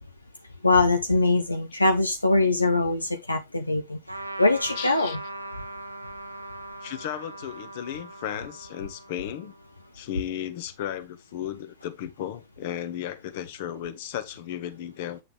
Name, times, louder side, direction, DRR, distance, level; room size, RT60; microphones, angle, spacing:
voice 1, 0.6-5.2, left 2 dB, 85° left, 0.8 m, -23 dB
Trumpet, 4.1-9.9, right 1 dB, 85° right, 1.0 m, -40 dB
voice 2, 4.8-5.2 6.8-9.5 9.9-15.2, left 10 dB, 50° left, 1.3 m, -35 dB
8.5 x 6.9 x 3.2 m
figure-of-eight pair, 90°, 0 cm